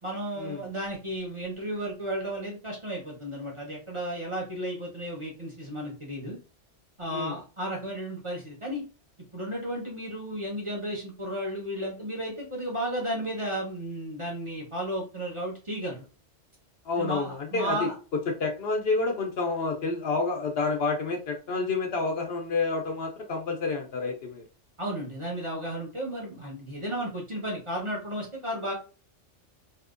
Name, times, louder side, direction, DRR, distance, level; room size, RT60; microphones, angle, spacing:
voice 1, 0.0-6.4 7.0-8.8 9.3-16.1 17.0-17.9 24.8-28.7, right 1 dB, 30° right, -3 dB, 1.0 m, -33 dB
voice 2, 16.8-17.9 18.3-24.4, left 3 dB, 60° left, 3 dB, 0.8 m, -29 dB
3.5 x 2.7 x 2.5 m, 0.35 s
omnidirectional pair, 1.2 m